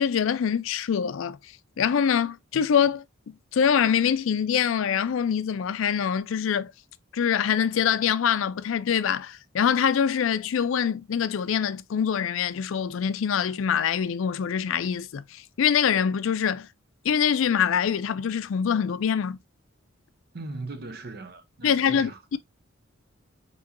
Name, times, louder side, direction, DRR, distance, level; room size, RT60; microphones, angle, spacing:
voice 1, 0.0-1.4 1.8-6.7 7.1-16.7 17.0-19.4 21.6-22.4, left 7 dB, 75° left, 0.4 m, -24 dB
voice 2, 20.3-22.4, right 3 dB, 50° right, 0.6 m, -39 dB
5.4 x 3.0 x 2.5 m
head